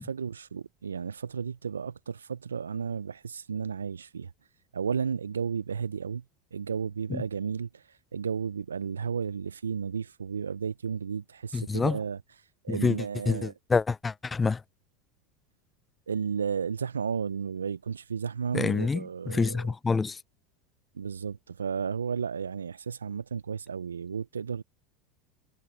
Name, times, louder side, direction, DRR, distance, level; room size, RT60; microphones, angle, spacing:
voice 1, 0.0-4.3 4.7-6.2 6.5-13.5 16.1-19.6 21.0-24.6, right 6 dB, 85° right, 0.5 m, -33 dB
voice 2, 11.5-12.0 12.7-14.6 18.5-20.2, left 4 dB, 20° left, 0.3 m, -27 dB
hypercardioid pair, 80°, 0 cm